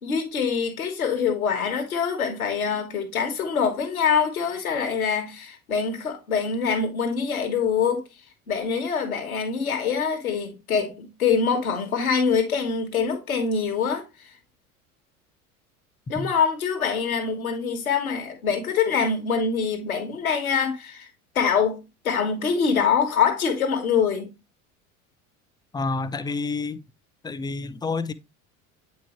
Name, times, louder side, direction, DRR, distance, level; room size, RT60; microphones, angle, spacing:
voice 1, 0.0-8.1 8.5-14.3 16.1-21.1 21.3-24.3, left 6 dB, 85° left, 1.3 m, -24 dB
voice 2, 25.7-26.8 27.2-28.1, left 3 dB, 10° left, 0.4 m, -29 dB
8.4 x 4.6 x 3.0 m
figure-of-eight pair, 70°, 42 cm